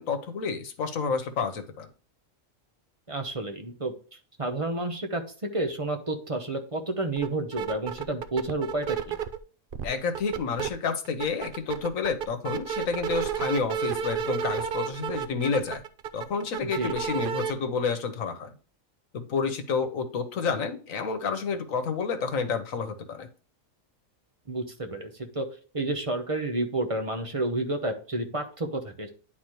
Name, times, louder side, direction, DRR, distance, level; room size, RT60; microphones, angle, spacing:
voice 1, 0.0-1.9 9.8-15.8 16.1-18.5 19.1-23.3, left 5 dB, 80° left, 8 dB, 1.4 m, -29 dB
voice 2, 3.1-3.9 4.4-9.2 16.6-17.0 24.5-25.5 25.7-29.1, right 2 dB, 30° right, 5 dB, 0.9 m, -30 dB
sound 1, 7.2-7.3 7.5-9.4 9.7-10.7 11.0-17.5, right 8 dB, 55° right, 0.6 m, -31 dB
10.5 x 4.0 x 3.1 m, 0.40 s
omnidirectional pair, 1.4 m